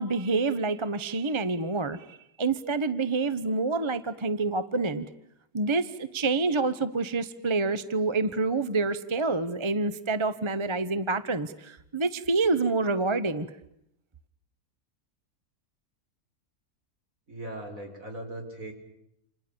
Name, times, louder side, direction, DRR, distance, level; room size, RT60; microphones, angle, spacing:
voice 1, 0.0-5.1 5.5-13.5, right 3 dB, 20° right, 13 dB, 1.0 m, -27 dB
voice 2, 17.3-18.7, right 1 dB, 60° right, 3 dB, 6.0 m, -39 dB
29.5 x 27.5 x 7.0 m, 0.78 s
omnidirectional pair, 1.6 m